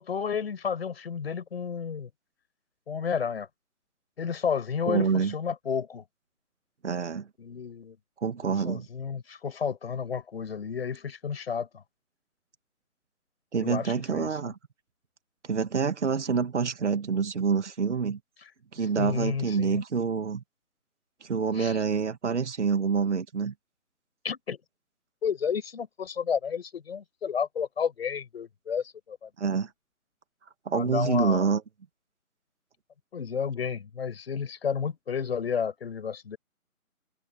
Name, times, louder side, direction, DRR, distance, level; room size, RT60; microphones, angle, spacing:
voice 1, 0.0-2.1 2.9-3.5 4.2-6.0 7.4-8.0 8.4-11.8 13.6-14.3 19.0-19.8 21.5-21.8 24.2-24.6 25.2-29.3 30.7-31.5 33.1-36.4, left 7 dB, 45° left, 6.6 m, -31 dB
voice 2, 4.9-5.3 6.8-7.3 8.2-8.9 13.5-14.5 15.5-18.2 18.7-20.4 21.2-23.5 29.4-29.7 30.7-31.6, right 5 dB, 50° right, 2.5 m, -27 dB
figure-of-eight pair, 155°, 43 cm